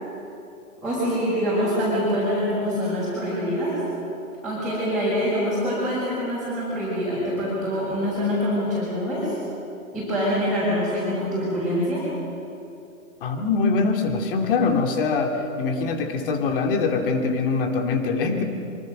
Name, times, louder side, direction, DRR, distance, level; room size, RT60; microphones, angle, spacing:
voice 1, 0.8-3.8 4.4-9.3 9.9-12.1, equal, ahead, -11 dB, 6.2 m, -25 dB
voice 2, 13.2-18.4, left 4 dB, 40° left, 4 dB, 2.6 m, -23 dB
25.5 x 24.5 x 6.5 m, 2.8 s
hypercardioid pair, 160°, 43 cm